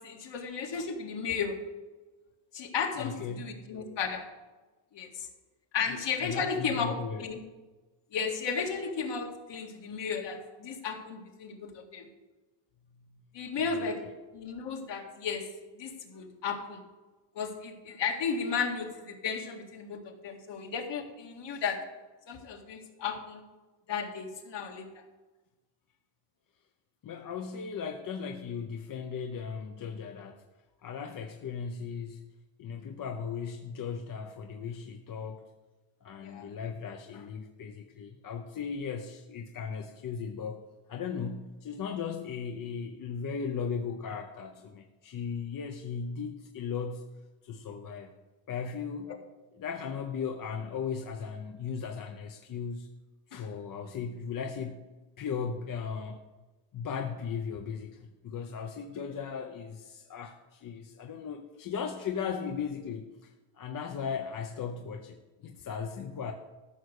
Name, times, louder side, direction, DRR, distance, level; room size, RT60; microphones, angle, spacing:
voice 1, 0.0-1.6 2.5-4.2 4.9-5.3 5.7-7.4 8.1-12.1 13.3-14.0 14.3-15.5 15.7-16.8 17.3-21.8 22.3-23.4 23.9-24.9 36.2-36.5 49.1-49.2 59.1-59.2, left 6 dB, 65° left, 2 dB, 2.0 m, -34 dB
voice 2, 3.0-3.5 5.9-7.3 13.7-13.9 27.0-30.4 30.8-32.2 32.6-35.4 36.0-40.6 40.9-47.0 47.4-48.1 48.5-49.1 49.5-52.9 53.3-54.8 55.2-56.2 56.7-66.3, left 6 dB, 45° left, 4 dB, 0.8 m, -37 dB
14.0 x 6.5 x 6.5 m, 1.2 s
cardioid pair, 175°, 46 cm